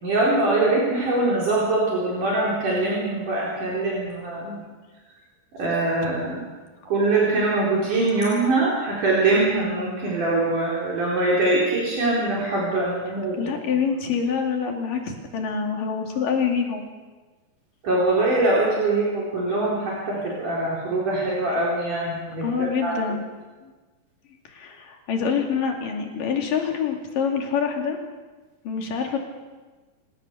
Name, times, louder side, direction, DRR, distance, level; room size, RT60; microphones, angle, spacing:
voice 1, 0.0-4.6 5.5-6.4 6.9-13.5 17.8-22.9, right 2 dB, 60° right, -5 dB, 5.7 m, -23 dB
voice 2, 13.4-16.8 22.4-23.2 23.6-23.7 24.5-28.0 28.7-29.2, left 6 dB, 70° left, 2 dB, 4.1 m, -26 dB
28.5 x 16.5 x 6.8 m, 1.3 s
omnidirectional pair, 4.1 m